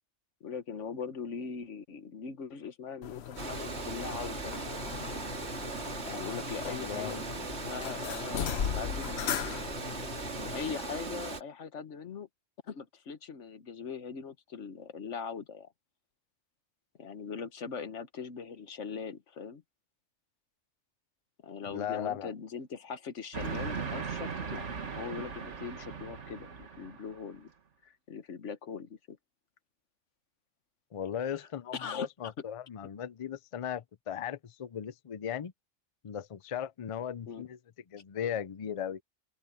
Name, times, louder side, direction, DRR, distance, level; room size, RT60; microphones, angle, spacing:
voice 1, 0.4-4.5 6.0-9.6 10.3-12.3 12.7-15.7 17.0-19.6 21.4-24.7 25.0-27.5 27.8-29.2 31.2-32.1 37.3-37.4, left 6 dB, 85° left, 1.5 m, -41 dB
sound 1, 3.0-10.7, left 9 dB, 65° left, 1.0 m, -38 dB
Water, 3.4-11.4, right 3 dB, 70° right, 2.4 m, -39 dB
voice 2, 6.6-7.3 21.7-22.3 30.9-35.5 36.0-37.6 37.9-39.0, left 9 dB, 40° left, 0.5 m, -37 dB
Train, 23.3-27.3, right 5 dB, 85° right, 1.9 m, -38 dB
open air
omnidirectional pair, 1.2 m